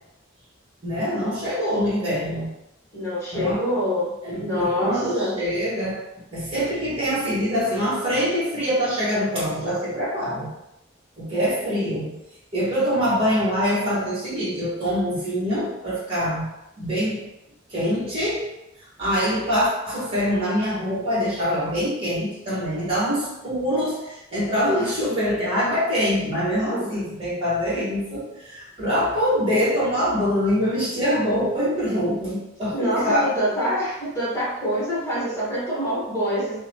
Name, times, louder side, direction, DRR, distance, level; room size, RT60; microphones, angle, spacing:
voice 1, 0.8-2.5 3.3-3.6 4.2-6.0 6.3-10.5 11.2-12.2 12.5-16.5 16.8-17.3 17.7-18.5 19.0-33.3, equal, 30° right, -8 dB, 1.1 m, -24 dB
voice 2, 2.9-4.1 4.4-5.3 26.7-26.9 32.7-36.6, equal, 15° left, -9 dB, 1.0 m, -25 dB
2.8 x 2.0 x 3.0 m, 0.89 s
head